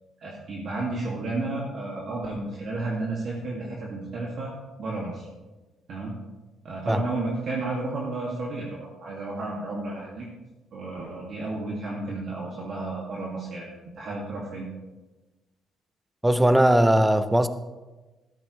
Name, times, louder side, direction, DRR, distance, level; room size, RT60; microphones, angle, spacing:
voice 1, 0.2-4.5 4.8-5.3 5.9-6.1 6.6-10.2 10.7-14.7, right 2 dB, 55° right, -4 dB, 2.5 m, -32 dB
voice 2, 16.2-17.5, right 1 dB, 10° right, 11 dB, 0.7 m, -19 dB
14.0 x 13.0 x 3.4 m, 1.2 s
cardioid pair, 105°, 0 cm